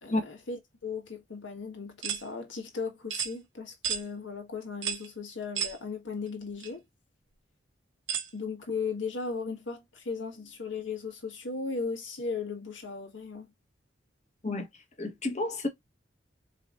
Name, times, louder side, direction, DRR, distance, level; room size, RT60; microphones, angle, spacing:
voice 1, 0.0-6.8 8.3-13.5, left 4 dB, 90° left, 1.8 m, -37 dB
sound 1, 2.0-2.2 3.1-3.3 3.8-4.0 4.8-5.1 5.6-5.8 6.6-6.7 8.1-8.3, right 8 dB, 85° right, 0.8 m, -32 dB
voice 2, 15.0-15.7, left 2 dB, 40° left, 1.3 m, -30 dB
4.9 x 3.3 x 2.6 m
head